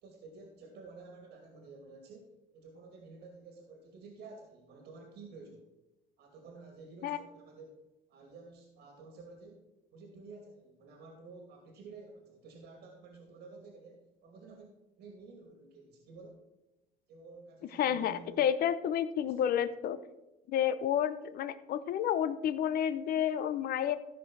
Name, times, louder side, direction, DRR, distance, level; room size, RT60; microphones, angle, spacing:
voice 1, 0.0-5.7 6.2-7.8 8.1-16.4 17.1-18.6 19.2-19.3, right 3 dB, 75° right, 2 dB, 2.4 m, -52 dB
voice 2, 17.8-20.0 20.5-24.0, left 9 dB, 60° left, 13 dB, 0.7 m, -30 dB
14.0 x 5.2 x 6.1 m, 1.0 s
cardioid pair, 110°, 17 cm